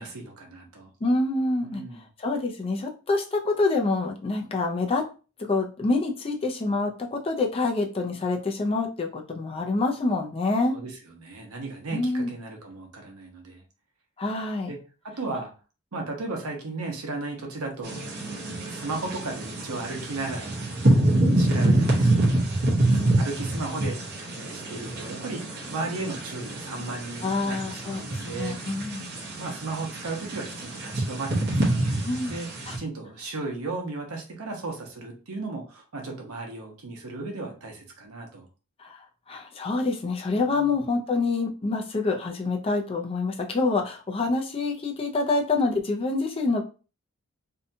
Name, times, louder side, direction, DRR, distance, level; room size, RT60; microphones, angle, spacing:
voice 1, 0.0-0.9 1.6-2.0 10.7-13.6 14.7-14.8 15.2-15.5 15.9-18.0 18.6-22.4 22.9-28.6 28.9-32.5 32.8-38.4 40.3-40.8, right 3 dB, 85° right, 2 dB, 0.8 m, -35 dB
voice 2, 1.0-5.0 5.4-10.7 11.9-12.3 14.2-14.7 21.2-21.4 27.2-29.1 32.0-32.4 32.7-32.8 38.8-46.6, left 3 dB, 25° left, 2 dB, 0.4 m, -27 dB
sound 1, 17.8-32.8, right 1 dB, 50° right, 0.8 m, -26 dB
2.7 x 2.2 x 2.6 m, 0.34 s
head